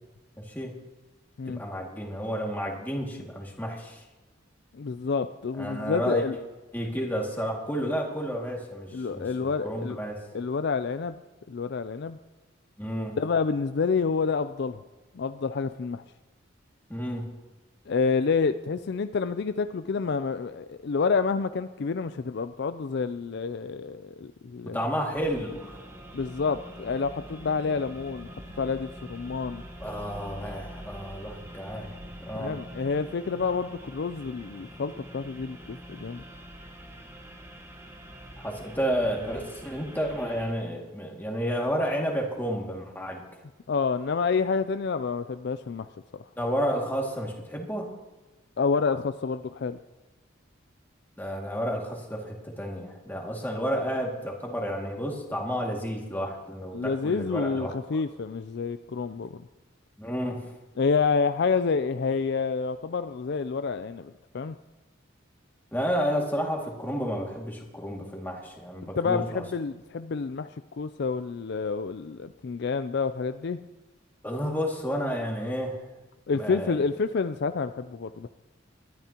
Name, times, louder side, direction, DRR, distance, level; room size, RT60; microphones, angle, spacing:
voice 1, 0.4-0.7 1.5-4.0 5.6-6.2 6.7-10.2 12.8-13.2 16.9-17.3 24.7-25.9 29.8-32.6 38.4-43.2 46.4-47.9 51.2-58.0 60.0-60.4 65.7-69.4 74.2-75.8 76.3-76.8, equal, 10° left, -1 dB, 2.2 m, -31 dB
voice 2, 4.7-6.3 8.9-10.0 10.3-11.2 11.5-12.2 13.2-14.8 15.1-16.0 17.9-24.8 26.1-29.6 32.4-36.2 43.7-45.9 48.6-49.8 56.7-59.4 60.8-64.6 69.0-73.6 76.3-78.3, left 5 dB, 55° left, 11 dB, 0.4 m, -28 dB
sound 1, 25.1-40.5, equal, 15° right, 1.2 m, -44 dB
21.5 x 13.0 x 3.0 m, 1.2 s
head